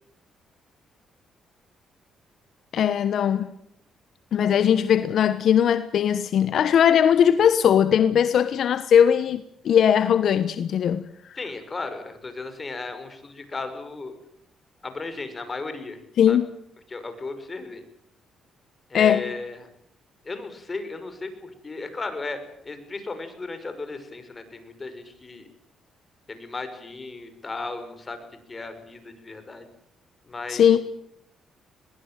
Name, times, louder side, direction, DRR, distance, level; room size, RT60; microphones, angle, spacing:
voice 1, 2.7-3.5 4.3-11.1 16.2-16.5 18.9-19.3 30.5-30.8, left 8 dB, 65° left, 1.2 m, -19 dB
voice 2, 11.4-14.1 14.8-16.0 16.3-16.4 16.9-17.8 18.9-19.7 20.2-22.4 22.6-25.5 26.3-28.2 28.5-29.7 30.2-30.8, left 3 dB, 30° left, 5.8 m, -35 dB
22.0 x 20.5 x 9.1 m
cardioid pair, 90°, 0 cm